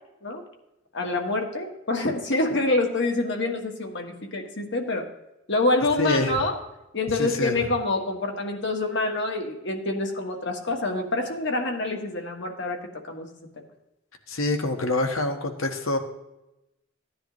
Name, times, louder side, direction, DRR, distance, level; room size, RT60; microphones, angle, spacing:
voice 1, 0.9-5.1 5.5-6.5 6.9-13.3 13.6-13.7, left 2 dB, 55° left, 3 dB, 1.5 m, -26 dB
voice 2, 6.0-6.4 7.2-7.6 14.3-16.0, left 2 dB, 75° left, 5 dB, 1.3 m, -26 dB
16.0 x 10.0 x 3.1 m, 0.93 s
head